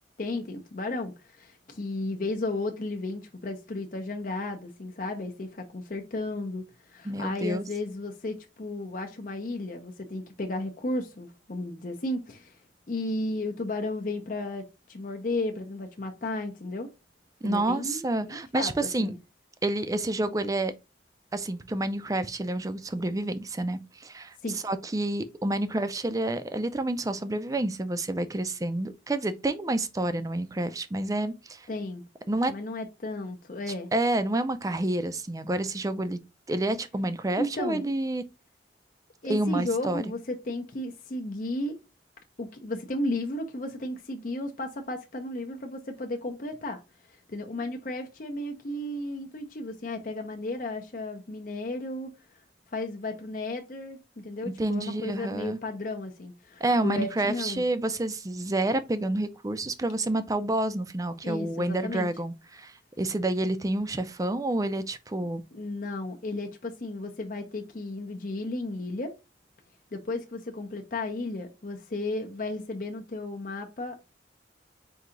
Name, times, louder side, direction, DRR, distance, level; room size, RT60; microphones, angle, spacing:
voice 1, 0.2-12.6 12.9-16.9 17.4-18.7 19.0-19.1 24.4-24.6 31.7-32.0 32.5-33.9 37.4-37.9 39.2-41.8 42.4-46.8 47.3-52.1 52.7-54.0 54.2-57.6 61.2-62.1 65.5-69.1 69.9-74.1, left 2 dB, 45° left, 0.6 m, -34 dB
voice 2, 7.0-7.6 17.4-19.1 19.6-20.7 21.3-31.7 32.3-32.5 33.9-36.2 36.5-38.2 39.2-40.0 54.6-55.6 56.6-65.4, right 2 dB, 20° right, 0.4 m, -29 dB
4.6 x 2.8 x 3.7 m
head